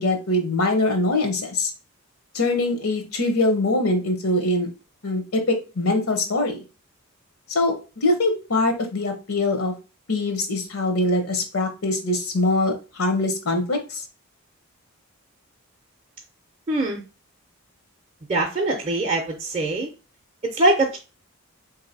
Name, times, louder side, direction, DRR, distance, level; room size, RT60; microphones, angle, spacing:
voice 1, 0.0-1.7 2.3-4.7 5.0-6.6 7.5-9.7 10.1-14.0, left 2 dB, 75° left, 5 dB, 0.8 m, -23 dB
voice 2, 16.7-17.0 18.3-19.9 20.4-21.0, right 2 dB, 25° right, -1 dB, 0.5 m, -22 dB
3.8 x 2.7 x 4.0 m, 0.31 s
head